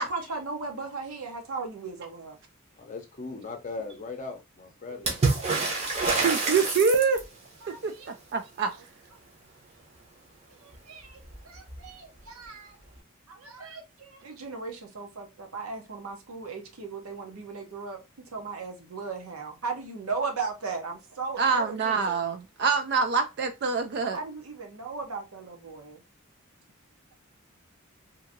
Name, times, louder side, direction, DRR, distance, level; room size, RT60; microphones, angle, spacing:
voice 1, 0.0-2.4 7.6-8.1 10.6-12.8 13.3-18.0 18.3-22.2 24.1-26.0, right 4 dB, 85° right, 0.8 m, -37 dB
voice 2, 2.8-5.1, left 3 dB, 35° left, 0.6 m, -38 dB
Water / Splash splatter, 5.0-7.4 10.7-10.8 11.1-11.9 12.9-13.0, right 3 dB, 30° right, 0.7 m, -27 dB
voice 3, 5.9-7.2 7.8-8.7 21.4-24.2, right 5 dB, 50° right, 0.3 m, -25 dB
2.8 x 2.6 x 2.5 m
head